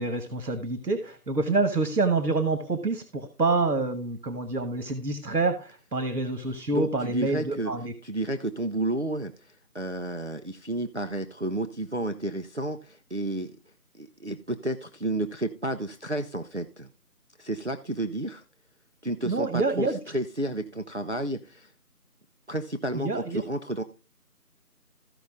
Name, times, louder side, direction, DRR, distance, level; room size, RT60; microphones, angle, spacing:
voice 1, 0.0-7.9 19.2-20.0 22.9-23.4, right 3 dB, 85° right, 8 dB, 1.4 m, -27 dB
voice 2, 6.7-7.7 8.0-13.5 13.9-16.9 17.4-18.4 19.0-21.7 22.5-23.8, right 1 dB, 50° right, 7 dB, 0.5 m, -31 dB
14.5 x 5.4 x 3.7 m, 0.33 s
figure-of-eight pair, 175°, 47 cm